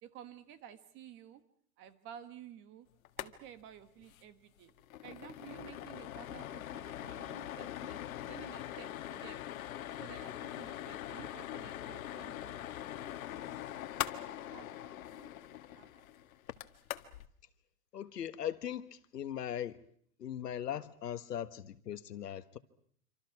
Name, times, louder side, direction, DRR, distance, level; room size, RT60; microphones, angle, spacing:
voice 1, 0.0-1.4 1.8-2.9 3.2-4.7 5.0-8.0 8.3-9.4 9.9-12.6 13.0-13.1 13.4-13.5 14.2-15.3 15.7-15.9, right 10 dB, 25° right, 12 dB, 1.6 m, -53 dB
sound 1, 3.0-3.3 3.6-3.7 4.0-4.2 4.6-17.3, left 12 dB, 60° left, 1.8 m, -42 dB
voice 2, 17.9-19.8 20.2-22.6, left 10 dB, 85° left, 12 dB, 1.7 m, -39 dB
26.5 x 26.0 x 6.1 m, 0.62 s
hypercardioid pair, 155°, 47 cm